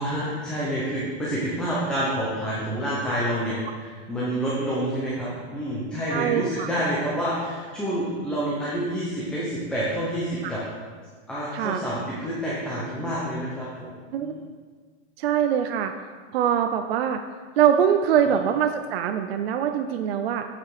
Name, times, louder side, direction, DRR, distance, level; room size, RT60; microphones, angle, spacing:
voice 1, 0.0-10.6 11.3-14.4 18.2-18.4, right 1 dB, ahead, -8 dB, 0.8 m, -28 dB
voice 2, 6.1-6.7 10.4-10.5 11.5-11.8 14.1-14.3 15.2-15.9 16.3-17.2 17.6-20.4, right 9 dB, 55° right, 6 dB, 0.5 m, -23 dB
9.1 x 5.7 x 4.9 m, 1.5 s
supercardioid pair, 165°, 36 cm